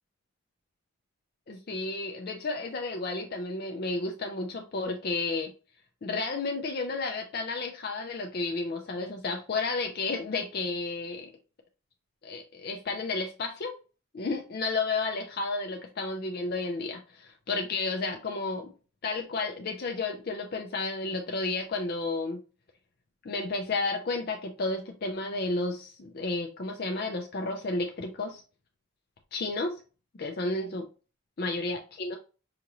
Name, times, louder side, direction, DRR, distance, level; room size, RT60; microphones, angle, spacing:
voice 1, 1.5-5.5 6.0-11.3 12.2-13.8 14.1-18.7 19.0-22.4 23.2-28.4 29.3-29.7 30.2-30.9 31.4-32.2, left 3 dB, 45° left, 3 dB, 0.5 m, -32 dB
5.7 x 2.6 x 2.9 m, 0.35 s
head